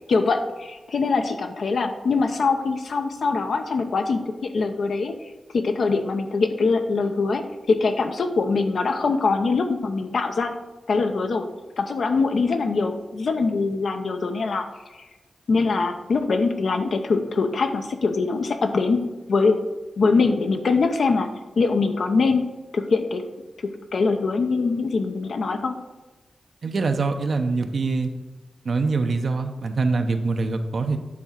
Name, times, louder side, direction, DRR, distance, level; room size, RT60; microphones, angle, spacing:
voice 1, 0.1-5.1 5.5-10.5 10.9-11.5 11.8-14.7 15.0-15.1 15.5-19.6 20.0-21.3 21.6-22.5 22.7-23.2 23.6-25.8, left 4 dB, 75° left, 6 dB, 0.8 m, -23 dB
voice 2, 26.6-28.1 28.6-31.0, right 3 dB, 65° right, 6 dB, 0.8 m, -24 dB
9.6 x 3.6 x 5.9 m, 1.2 s
cardioid pair, 65°, 0 cm